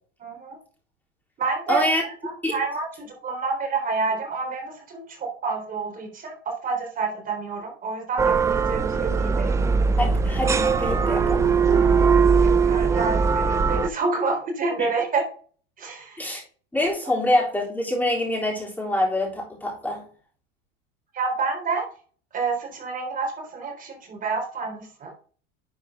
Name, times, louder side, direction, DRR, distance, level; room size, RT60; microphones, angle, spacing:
voice 1, 0.2-0.6 1.4-6.3 6.6-9.7 12.3-15.3 15.8-16.2 17.0-17.2 21.1-21.9 22.3-25.1, right 4 dB, 25° right, 2 dB, 3.7 m, -28 dB
voice 2, 1.7-2.0 2.4-2.6 10.0-11.5 16.2-16.4 16.7-20.0, left 1 dB, 5° left, -3 dB, 3.6 m, -25 dB
sound 1, 8.2-13.9, right 5 dB, 10° right, 0.3 m, -20 dB
11.0 x 5.2 x 3.7 m, 0.43 s
supercardioid pair, 140°, 31 cm